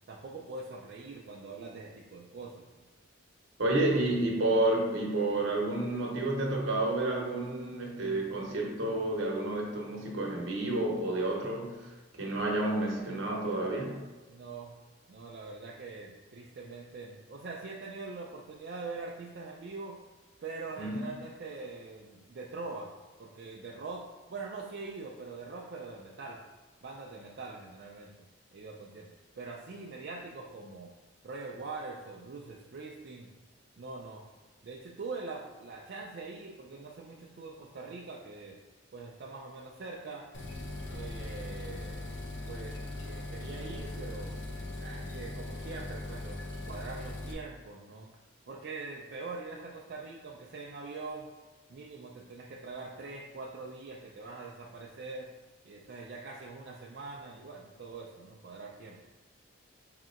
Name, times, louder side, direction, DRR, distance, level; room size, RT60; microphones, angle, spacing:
voice 1, 0.1-2.7 14.3-14.7 15.1-20.0 20.4-22.9 23.2-26.4 26.8-28.1 28.5-29.1 29.4-30.9 31.2-33.3 33.8-34.2 34.6-38.6 38.9-40.3 40.9-42.1 42.5-44.4 44.8-48.1 48.5-51.3 51.7-55.3 55.6-59.0, right 3 dB, 55° right, -2 dB, 0.4 m, -43 dB
voice 2, 3.6-14.0 20.8-21.1, right 2 dB, 70° right, -1 dB, 0.8 m, -30 dB
sound 1, 40.3-47.3, left 2 dB, 60° left, 0.6 m, -40 dB
5.0 x 2.8 x 2.4 m, 1.3 s
head